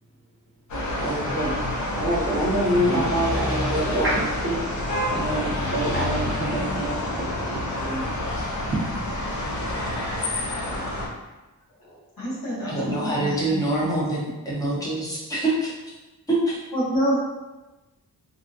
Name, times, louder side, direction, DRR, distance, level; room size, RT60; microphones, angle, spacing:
sound 1, 0.7-11.1, left 1 dB, 55° left, 0.5 m, -28 dB
voice 1, 1.0-4.7 5.1-8.9, right 1 dB, 35° right, -7 dB, 0.8 m, -27 dB
voice 2, 11.8-13.9 16.7-17.2, equal, 70° left, -7 dB, 1.0 m, -28 dB
voice 3, 12.7-15.7 16.3-16.6, right 2 dB, 10° left, -7 dB, 0.6 m, -25 dB
2.7 x 2.4 x 2.6 m, 1.1 s
wide cardioid pair, 170°, 34 cm